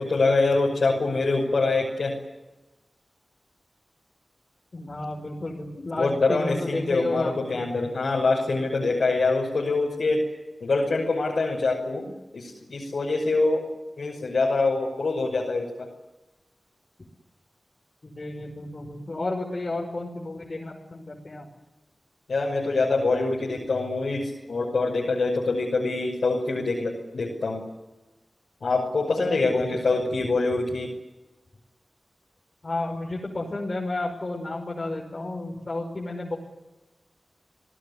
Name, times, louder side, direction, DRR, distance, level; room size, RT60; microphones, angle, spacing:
voice 1, 0.0-2.1 6.0-10.2 10.6-12.1 12.3-13.7 14.0-15.9 22.3-27.6 28.6-30.9, left 3 dB, 85° left, -2 dB, 6.0 m, -25 dB
voice 2, 4.7-7.6 18.0-21.5 29.7-29.8 30.2-30.3 32.6-36.4, left 2 dB, 50° left, -2 dB, 5.9 m, -32 dB
29.5 x 19.0 x 9.9 m, 1.1 s
wide cardioid pair, 60°, 0 cm